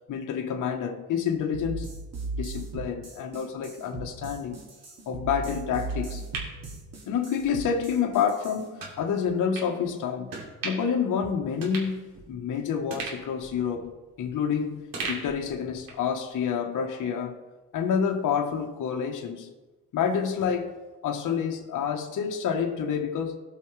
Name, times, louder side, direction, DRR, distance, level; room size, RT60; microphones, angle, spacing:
voice 1, 0.1-1.9 2.4-4.6 5.1-6.3 6.5-6.6 7.1-10.3 10.6-13.9 14.2-17.4 17.7-19.5 19.9-20.8 21.0-23.4, left 7 dB, 60° left, 1.1 m, -28 dB
sound 1, 1.5-8.6, right 3 dB, 45° right, 2.4 m, -37 dB
sound 2, 5.9-7.5 7.9-8.0 8.8-9.0 9.5-9.7 10.3-11.0 11.3-11.4 11.6-12.5 12.9-14.5 14.9-16.1 16.4-16.5, right 4 dB, 70° right, 2.9 m, -38 dB
17.5 x 5.8 x 3.2 m
cardioid pair, 100°, 36 cm